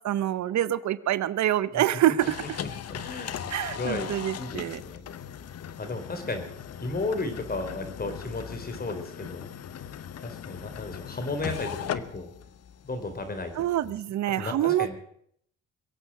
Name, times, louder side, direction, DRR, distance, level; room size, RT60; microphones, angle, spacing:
voice 1, 0.0-2.6 3.5-4.8 13.6-14.9, right 12 dB, 65° right, 16 dB, 0.8 m, -26 dB
sound 1, 2.2-13.9, left 9 dB, 55° left, 1.0 m, -39 dB
voice 2, 2.9-5.2 5.8-6.5 6.8-9.5 10.2-12.3 12.8-13.9 14.4-14.9, left 2 dB, 30° left, 7 dB, 4.1 m, -34 dB
23.0 x 8.3 x 7.6 m, 0.68 s
cardioid pair, 90°, 30 cm